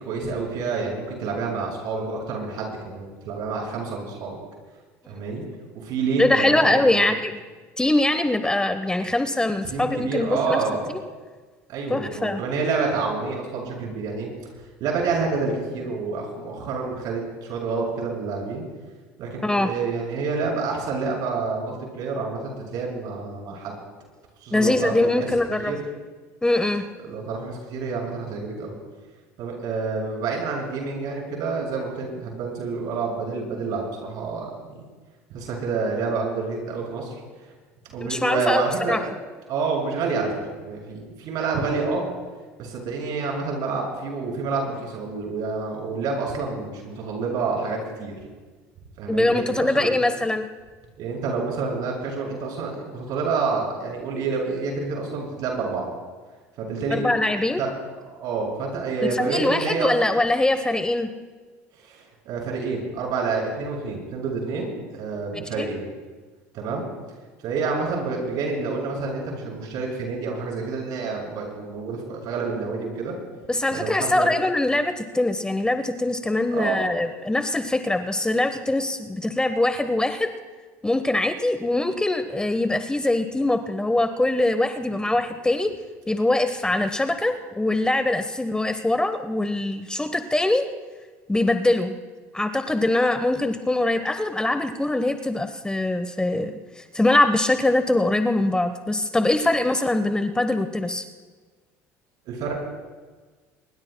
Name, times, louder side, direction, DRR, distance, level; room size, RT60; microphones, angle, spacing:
voice 1, 0.0-4.4 5.1-5.4 5.8-7.0 9.7-10.8 11.7-14.3 14.8-18.6 19.2-23.7 24.4-25.3 25.6-25.8 27.1-28.7 29.4-34.8 35.3-37.2 37.4-37.5 37.9-39.0 39.5-42.0 42.6-48.1 49.0-50.0 51.0-55.8 56.6-57.1 57.6-57.7 58.1-59.9 61.8-65.8 66.5-66.8 67.4-73.1 73.7-74.3 76.5-76.8 102.3-102.6, right 4 dB, 65° right, -1 dB, 6.7 m, -28 dB
voice 2, 6.2-7.4 7.8-10.6 11.9-12.4 19.4-19.7 24.5-25.8 26.4-26.9 38.0-38.6 38.9-39.0 49.1-50.5 56.9-57.6 59.2-61.1 65.3-65.7 73.5-80.3 80.8-85.7 86.1-90.7 91.3-91.9 92.3-96.6 96.9-101.0, left 2 dB, 10° left, 9 dB, 1.1 m, -22 dB
25.5 x 22.5 x 2.3 m, 1.4 s
hypercardioid pair, 75°, 7 cm